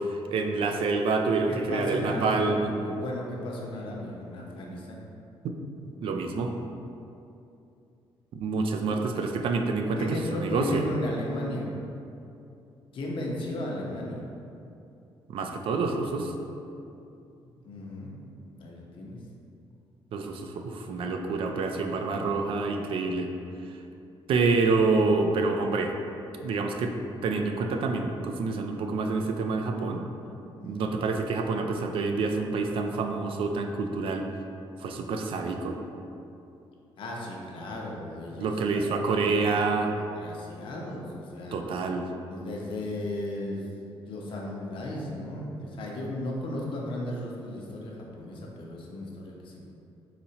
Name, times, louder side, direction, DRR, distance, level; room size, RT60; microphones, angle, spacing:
voice 1, 0.0-2.7 5.4-5.6 6.0-6.5 8.3-10.1 10.3-10.8 15.3-16.3 20.1-23.3 24.3-25.9 26.4-26.9 27.2-30.0 30.6-34.3 34.8-35.8 38.4-39.9 41.5-42.1, right 3 dB, 65° right, 4 dB, 0.4 m, -27 dB
voice 2, 1.5-5.0 10.0-11.7 12.9-14.2 17.4-18.2 18.6-19.2 30.6-31.0 37.0-38.6 38.9-41.6 42.3-43.6 44.1-49.6, left 1 dB, 60° left, -2 dB, 0.8 m, -35 dB
4.1 x 4.1 x 2.8 m, 2.7 s
cardioid pair, 120°, 10 cm